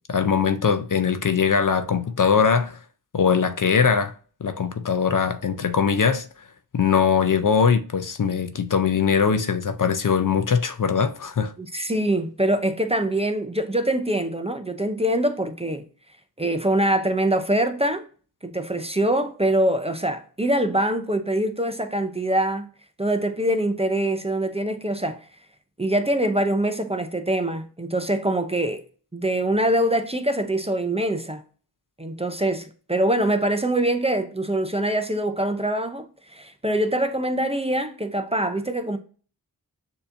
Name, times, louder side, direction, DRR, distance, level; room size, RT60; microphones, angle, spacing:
voice 1, 0.1-2.8 3.1-4.1 4.4-6.2 6.7-11.5, left 6 dB, 55° left, 0.5 m, -21 dB
voice 2, 11.6-15.9 16.4-18.0 18.4-22.7 23.0-25.2 25.8-28.8 29.1-31.4 32.0-39.0, right 1 dB, 15° right, 0.5 m, -24 dB
6.6 x 2.8 x 2.5 m
wide cardioid pair, 45°, 38 cm